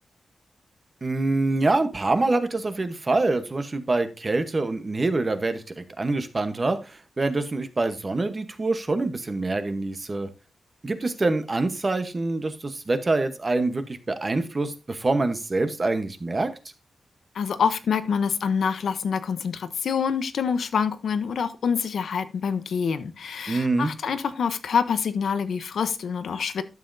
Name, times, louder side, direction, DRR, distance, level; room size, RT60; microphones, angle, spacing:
voice 1, 1.0-10.3 10.8-16.5 23.5-23.9, right 2 dB, 25° right, 1.0 m, -25 dB
voice 2, 17.3-26.6, left 6 dB, 75° left, 0.8 m, -26 dB
12.0 x 7.4 x 2.6 m
wide cardioid pair, 175°, 0 cm